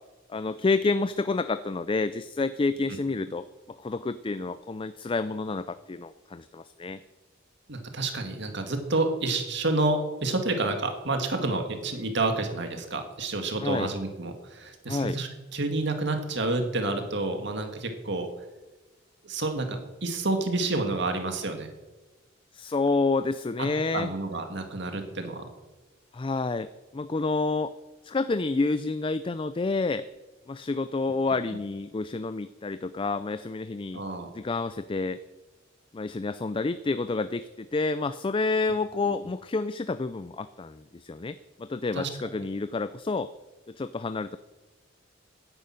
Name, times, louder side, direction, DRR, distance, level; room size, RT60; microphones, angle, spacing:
voice 1, 0.3-7.0 13.6-13.9 14.9-15.2 22.5-24.1 26.1-27.7 28.0-30.1 30.5-34.0 34.3-35.2 35.9-43.3 43.7-44.4, left 3 dB, 25° left, 13 dB, 0.4 m, -29 dB
voice 2, 7.7-18.3 19.2-21.7 23.6-23.7 23.9-25.5 33.9-34.3 42.0-42.1, right 2 dB, 60° right, 5 dB, 2.1 m, -29 dB
10.5 x 10.5 x 9.0 m, 1.2 s
head